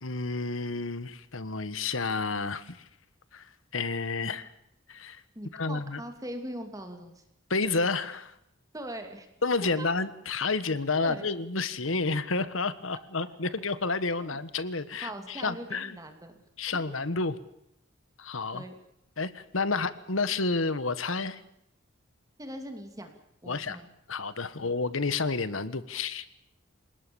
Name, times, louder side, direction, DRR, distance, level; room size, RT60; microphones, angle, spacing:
voice 1, 0.0-2.8 3.3-4.5 4.9-5.2 5.5-6.0 7.5-8.3 9.4-16.0 16.6-17.4 18.2-18.6 19.2-21.4 23.5-23.8 24.1-26.3, left 3 dB, 85° left, 14 dB, 1.5 m, -30 dB
voice 2, 5.3-7.2 8.7-9.3 9.6-9.9 11.0-11.3 14.2-14.4 15.0-16.3 16.9-17.0 18.5-18.7 22.4-23.1 23.4-23.9 24.5-24.7, right 1 dB, 15° right, 5 dB, 2.7 m, -41 dB
28.0 x 19.5 x 7.1 m, 0.79 s
head